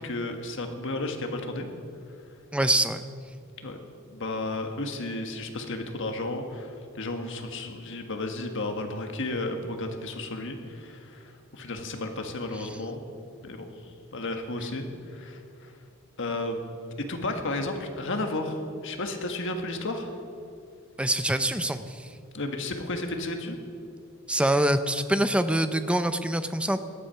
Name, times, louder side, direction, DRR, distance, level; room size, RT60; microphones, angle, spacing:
voice 1, 0.0-1.7 3.6-3.8 4.1-13.0 13.4-13.7 14.1-15.7 16.2-20.2 22.3-23.6, left 2 dB, 60° left, 5 dB, 1.5 m, -33 dB
voice 2, 2.5-3.0 21.0-22.1 24.3-26.8, right 1 dB, 5° right, 10 dB, 0.6 m, -25 dB
18.5 x 12.0 x 5.7 m, 2.4 s
head